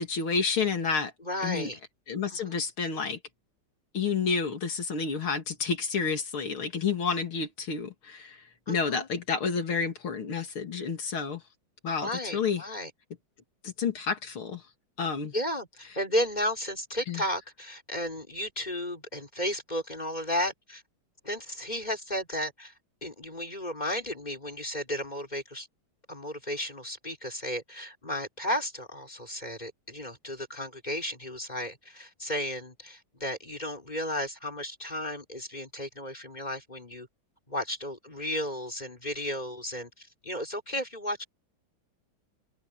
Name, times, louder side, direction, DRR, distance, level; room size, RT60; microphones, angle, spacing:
voice 1, 0.0-1.1 1.4-1.7 2.1-3.2 3.9-11.4 11.8-12.6 13.6-14.6 15.0-15.3 17.1-17.2, left 5 dB, 85° left, 3.5 m, -30 dB
voice 2, 1.2-1.8 2.3-2.6 8.7-9.1 12.0-12.9 15.3-20.8 21.2-22.7 23.0-25.7 26.1-37.1 37.5-41.2, equal, 20° left, 4.2 m, -34 dB
omnidirectional pair, 2.2 m